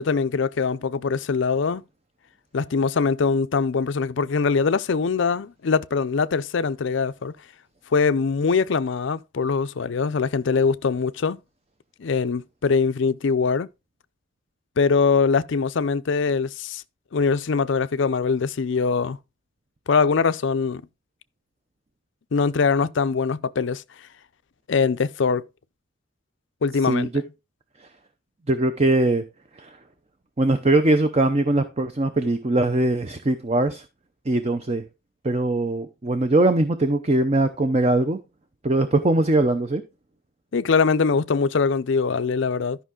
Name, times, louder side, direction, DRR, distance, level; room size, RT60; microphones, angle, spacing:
voice 1, 0.0-1.8 2.5-7.3 7.9-11.4 12.0-13.7 14.8-16.8 17.1-19.2 19.9-20.8 22.3-23.8 24.7-25.5 26.6-27.1 40.5-42.8, left 5 dB, 60° left, 0.4 m, -22 dB
voice 2, 26.8-27.2 28.5-29.2 29.6-29.8 30.4-33.8 34.3-34.8 35.2-38.2 38.6-39.8, right 2 dB, 30° right, 0.7 m, -21 dB
12.5 x 5.7 x 3.8 m
head